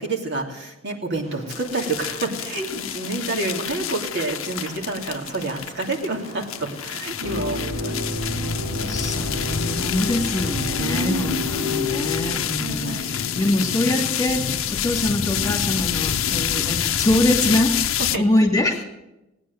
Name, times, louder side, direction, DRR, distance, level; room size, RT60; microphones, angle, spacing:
voice 1, 0.0-7.9 8.7-9.0 10.8-11.4 12.6-13.1 18.1-18.2, right 2 dB, 55° right, -1 dB, 2.9 m, -28 dB
sound 1, 1.2-17.4, right 1 dB, 35° right, 4.9 m, -43 dB
sound 2, 1.5-18.2, left 9 dB, 75° left, 0.6 m, -27 dB
sound 3, 7.2-12.4, left 2 dB, 85° right, 3.2 m, -29 dB
voice 2, 8.9-17.8 18.2-18.8, left 1 dB, 20° left, 1 dB, 2.4 m, -24 dB
18.5 x 9.8 x 7.9 m, 0.95 s
head